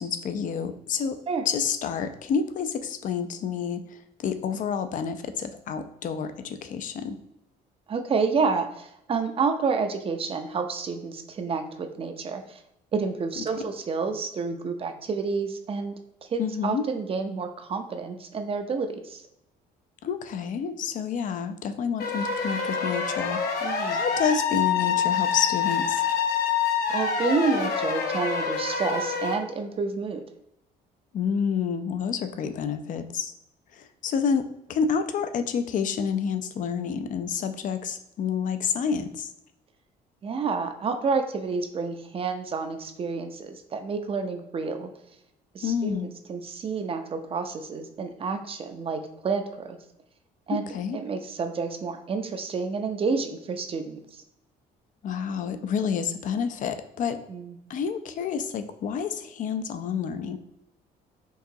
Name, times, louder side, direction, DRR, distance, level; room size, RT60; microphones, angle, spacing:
voice 1, 0.0-1.2 1.5-7.2 16.4-16.8 20.0-23.4 23.9-26.0 31.1-33.3 33.7-39.3 45.6-46.1 50.5-51.0 55.0-57.2 57.7-60.4, left 6 dB, 50° left, 9 dB, 0.5 m, -29 dB
voice 2, 7.9-12.6 12.9-16.0 16.2-19.2 23.6-24.0 26.9-30.2 40.2-44.9 45.5-49.8 50.5-50.6 50.9-54.2 57.3-57.6, right 4 dB, 35° right, 7 dB, 0.5 m, -29 dB
sound 1, 22.0-29.4, left 6 dB, 70° left, 0.8 m, -26 dB
4.7 x 2.8 x 2.7 m, 0.81 s
cardioid pair, 110°, 17 cm